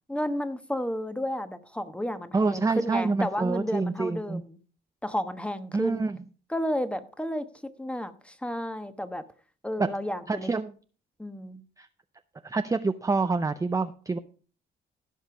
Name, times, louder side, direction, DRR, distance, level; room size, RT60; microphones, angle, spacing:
voice 1, 0.1-4.6 5.0-6.1 6.5-7.4 7.8-9.2 9.6-10.5 11.2-11.6, equal, 5° left, 1.2 m, -32 dB
voice 2, 2.3-4.4 5.7-6.2 9.8-9.9 10.3-10.7 11.8-11.9 12.4-14.2, right 3 dB, 15° right, 0.6 m, -27 dB
15.5 x 5.5 x 5.0 m
cardioid pair, 90°, 20 cm